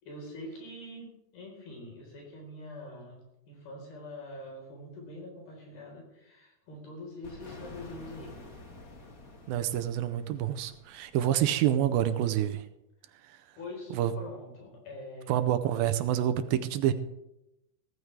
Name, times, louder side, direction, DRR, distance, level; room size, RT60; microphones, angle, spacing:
voice 1, 0.0-3.2 3.5-8.4 13.6-15.4, left 1 dB, 80° left, -1 dB, 6.1 m, -44 dB
sound 1, 7.2-11.9, left 2 dB, 65° left, 0.8 m, -50 dB
voice 2, 9.5-12.6 13.9-14.1 15.3-16.9, right 11 dB, 80° right, 10 dB, 2.4 m, -27 dB
16.5 x 14.5 x 3.3 m, 0.89 s
omnidirectional pair, 4.3 m